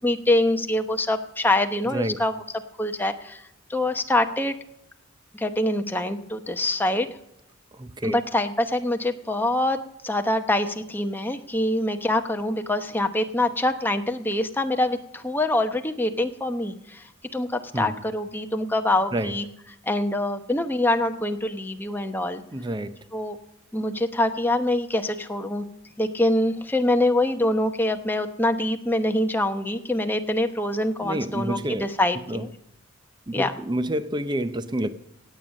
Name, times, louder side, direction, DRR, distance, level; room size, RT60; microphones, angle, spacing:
voice 1, 0.0-2.3 2.8-4.5 5.3-7.1 8.1-9.8 10.0-19.4 19.9-22.4 23.1-23.4 23.7-25.6 26.0-32.5 33.3-33.5, left 1 dB, 10° left, 0.9 m, -25 dB
voice 2, 7.7-8.2 17.7-18.0 19.1-19.3 22.5-23.0 31.0-31.9 32.3-32.4 33.3-34.9, right 1 dB, 20° right, 0.6 m, -28 dB
16.5 x 9.0 x 6.4 m
head